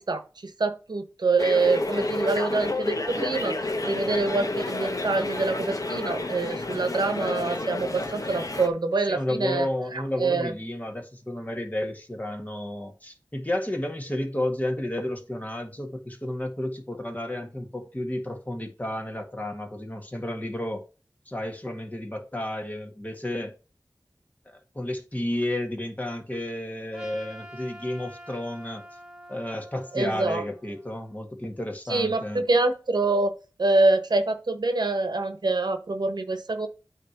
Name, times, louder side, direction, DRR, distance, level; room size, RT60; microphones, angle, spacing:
voice 1, 0.0-9.7 9.9-10.5 29.9-30.4 31.9-33.3 33.6-36.7, right 3 dB, 80° right, 1.1 m, -25 dB
sound 1, 1.4-8.7, left 2 dB, 55° left, 1.2 m, -30 dB
voice 2, 9.1-20.8 21.2-23.5 24.4-28.8 29.3-32.4, left 1 dB, 20° left, 1.8 m, -32 dB
Trumpet, 26.9-31.2, equal, 5° right, 2.9 m, -46 dB
8.8 x 3.2 x 5.9 m
wide cardioid pair, 50°, 7 cm